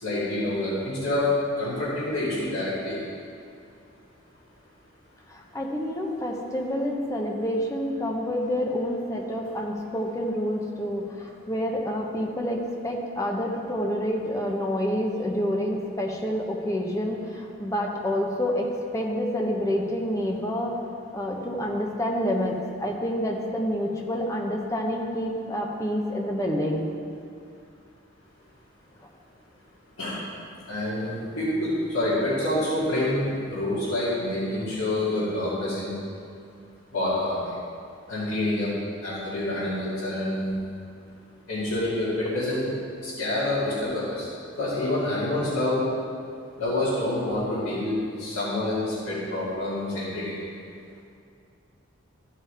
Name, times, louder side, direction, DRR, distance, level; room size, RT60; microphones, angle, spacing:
voice 1, 0.0-1.3 1.6-3.0 30.0-30.2 30.7-35.9 36.9-37.6 38.1-38.7 39.0-40.5 41.5-42.7 43.0-44.3 44.6-45.8 46.6-50.3, left 1 dB, 80° left, -12 dB, 2.7 m, -27 dB
voice 2, 5.3-20.7 21.1-26.8, equal, 15° left, 0 dB, 1.0 m, -28 dB
14.0 x 5.7 x 4.8 m, 2.5 s
head